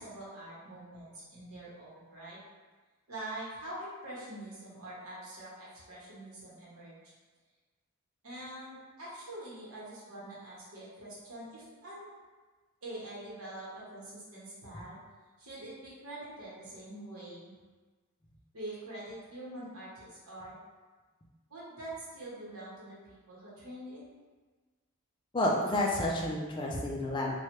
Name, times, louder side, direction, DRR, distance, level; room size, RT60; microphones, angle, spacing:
voice 1, 0.0-2.4 3.1-7.1 8.2-12.1 12.8-15.0 15.4-17.5 18.5-20.5 21.5-24.0, right 1 dB, 75° right, -7 dB, 1.0 m, -45 dB
voice 2, 25.3-27.4, left 1 dB, 20° left, -2 dB, 0.3 m, -30 dB
3.1 x 2.3 x 3.0 m, 1.4 s
head